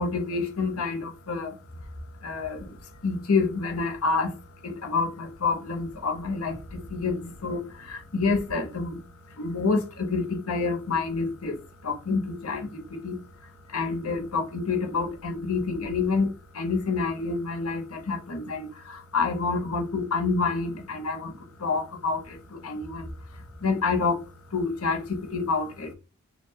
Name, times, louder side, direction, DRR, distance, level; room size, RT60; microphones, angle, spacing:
voice 1, 0.0-1.6 2.2-4.4 4.6-9.0 9.4-13.2 13.7-24.2 24.5-25.9, left 4 dB, 80° left, 0.8 m, -28 dB
4.2 x 2.4 x 3.3 m
head